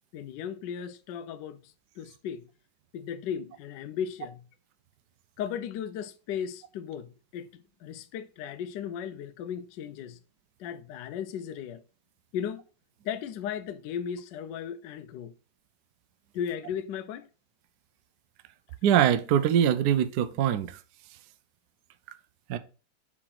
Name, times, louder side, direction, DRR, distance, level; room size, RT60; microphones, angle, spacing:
voice 1, 0.1-2.5 2.9-4.4 5.4-10.2 10.6-11.8 12.3-12.6 13.0-15.3 16.3-17.3, left 8 dB, 75° left, 1.1 m, -36 dB
voice 2, 18.8-20.8 22.5-22.6, right 9 dB, 70° right, 1.0 m, -23 dB
4.8 x 4.2 x 5.8 m
omnidirectional pair, 2.1 m